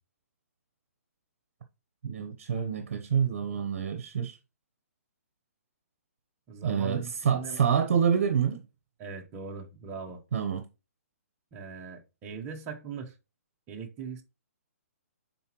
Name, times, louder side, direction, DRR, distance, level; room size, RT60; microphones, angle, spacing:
voice 1, 2.0-4.4 6.6-8.6 10.3-10.6, right 7 dB, 50° right, 0.9 m, -27 dB
voice 2, 6.5-7.7 9.0-10.2 11.5-13.1 13.7-14.2, right 5 dB, 15° right, 0.8 m, -40 dB
9.7 x 4.0 x 3.0 m
hypercardioid pair, 170°, 8 cm